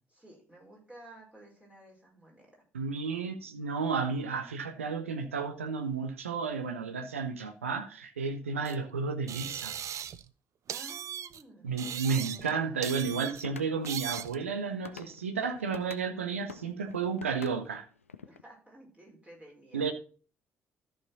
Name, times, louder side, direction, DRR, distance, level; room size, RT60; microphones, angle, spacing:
voice 1, 0.1-2.6 10.7-13.4 18.2-19.9, right 1 dB, 15° right, 5.0 m, -54 dB
voice 2, 2.7-9.7 11.6-17.9 19.7-19.9, right 5 dB, 80° right, 0.8 m, -32 dB
sound 1, 8.6-8.7 9.3-10.3 10.7-11.4 11.8-12.5 12.8-13.4 13.8-14.4, right 9 dB, 50° right, 0.5 m, -38 dB
sound 2, 13.4-16.1 16.5-18.4, left 6 dB, 85° left, 0.4 m, -47 dB
13.5 x 5.0 x 4.0 m
figure-of-eight pair, 45°, 7 cm